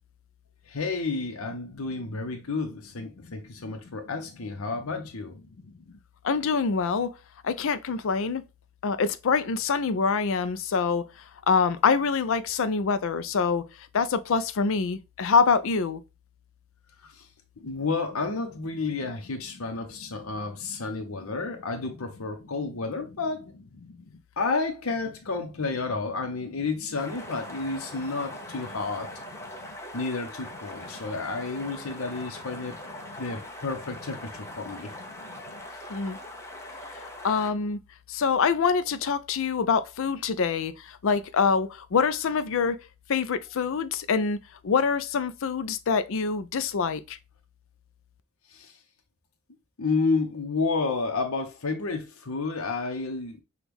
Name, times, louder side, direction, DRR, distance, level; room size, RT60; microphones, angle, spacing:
voice 1, 0.7-5.4 17.1-17.2 17.6-23.5 24.4-29.1 29.9-32.8 33.2-34.9 48.5-48.7 49.8-53.4, left 3 dB, 85° left, 0.9 m, -31 dB
voice 2, 6.2-7.1 7.4-8.4 8.8-11.1 11.5-13.6 13.9-16.0 23.8-23.9 35.9-36.2 36.9-37.8 38.1-42.8 43.1-44.4 44.6-47.2, left 5 dB, 65° left, 0.5 m, -25 dB
sound 1, 27.0-37.5, left 1 dB, 15° left, 0.7 m, -41 dB
6.1 x 2.4 x 3.4 m
head